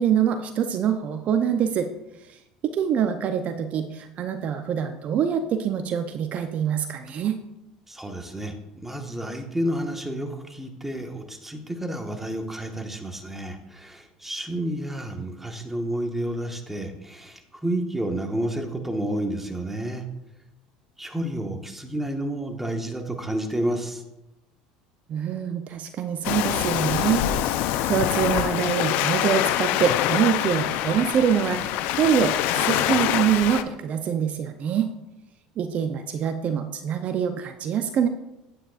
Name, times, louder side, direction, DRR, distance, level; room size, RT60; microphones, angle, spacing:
voice 1, 0.0-1.9 2.3-2.4 2.6-7.4 25.1-27.3 27.8-34.9 35.6-38.1, right 8 dB, 45° right, 8 dB, 0.7 m, -25 dB
voice 2, 7.9-8.6 8.8-20.0 21.0-24.0, right 1 dB, 5° right, 4 dB, 1.4 m, -30 dB
Waves surf, 26.2-33.6, left 12 dB, 60° left, 0.6 m, -25 dB
9.8 x 8.8 x 2.5 m, 0.94 s
hypercardioid pair, 75°, 3 cm